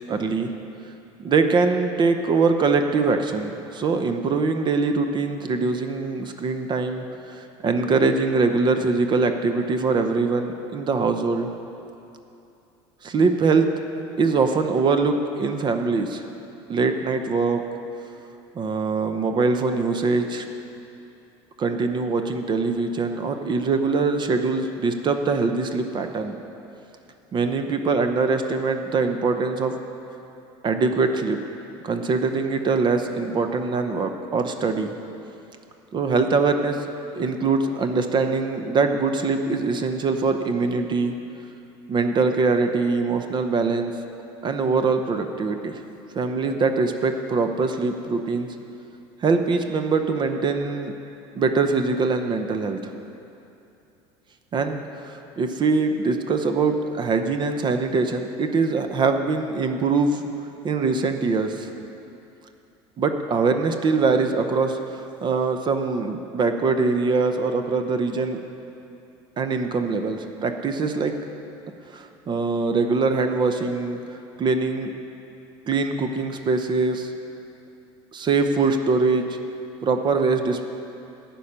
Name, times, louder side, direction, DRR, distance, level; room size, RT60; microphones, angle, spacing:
voice 1, 0.1-0.5 1.2-11.5 13.0-13.7 14.2-16.2 16.7-17.6 18.5-20.4 21.6-26.3 27.3-29.7 30.6-31.4 31.8-34.9 35.9-36.9 37.1-41.1 41.9-43.9 44.4-45.8 46.1-48.5 49.2-50.9 51.3-52.9 54.5-54.8 55.0-60.2 60.6-61.7 63.0-68.4 69.4-71.1 71.9-74.0 74.4-74.9 75.7-77.1 78.1-79.3 79.8-80.7, right 4 dB, 35° right, 7 dB, 0.8 m, -23 dB
11.5 x 5.4 x 8.7 m, 2.8 s
supercardioid pair, 105°, 13 cm